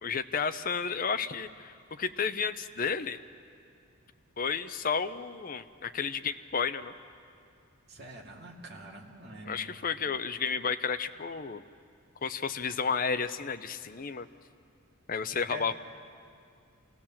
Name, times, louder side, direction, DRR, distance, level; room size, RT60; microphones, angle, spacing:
voice 1, 0.0-3.2 4.4-6.9 9.4-11.6 12.2-14.3 15.1-15.7, left 5 dB, 40° left, 10 dB, 0.6 m, -32 dB
voice 2, 7.9-9.7 15.5-15.6, right 1 dB, 45° right, -1 dB, 2.4 m, -44 dB
27.0 x 17.0 x 7.3 m, 2.4 s
head